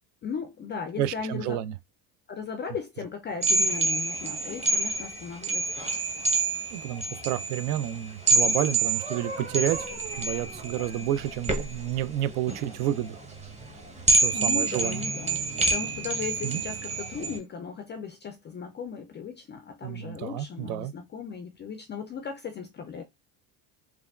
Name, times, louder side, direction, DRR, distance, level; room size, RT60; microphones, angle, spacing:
voice 1, 0.2-1.6 2.3-6.0 14.3-23.0, left 6 dB, 25° left, 0.3 m, -37 dB
voice 2, 1.0-1.7 6.7-9.9 10.2-13.2 14.2-15.0 16.4-16.6 19.8-20.9, right 12 dB, 70° right, 0.5 m, -30 dB
sound 1, 3.4-17.4, right 3 dB, 15° right, 0.8 m, -27 dB
3.4 x 2.2 x 2.3 m
supercardioid pair, 85°, 48 cm